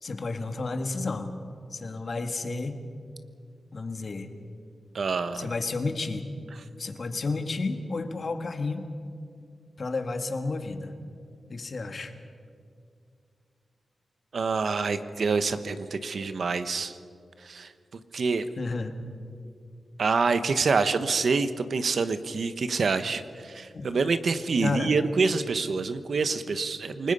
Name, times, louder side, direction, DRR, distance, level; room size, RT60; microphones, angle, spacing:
voice 1, 0.0-1.3 1.7-2.8 3.7-4.3 5.3-6.3 6.8-8.9 9.8-10.9 11.5-12.1 18.6-19.0 23.7-23.8 24.6-24.9, left 3 dB, 55° left, 6 dB, 1.8 m, -31 dB
voice 2, 4.9-5.5 14.3-17.0 17.4-18.5 20.0-27.1, right 4 dB, 65° right, 11 dB, 1.0 m, -27 dB
28.5 x 19.5 x 5.5 m, 2.3 s
wide cardioid pair, 90°, 0 cm